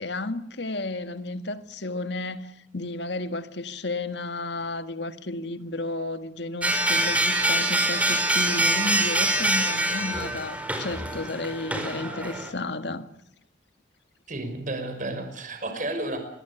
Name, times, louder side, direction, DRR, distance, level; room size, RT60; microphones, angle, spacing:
voice 1, 0.0-13.1, left 2 dB, 65° left, 1.8 m, -32 dB
sound 1, 6.6-12.5, right 1 dB, 5° right, 4.2 m, -25 dB
voice 2, 14.3-16.2, right 2 dB, 45° right, 5.6 m, -32 dB
26.5 x 22.0 x 7.1 m
head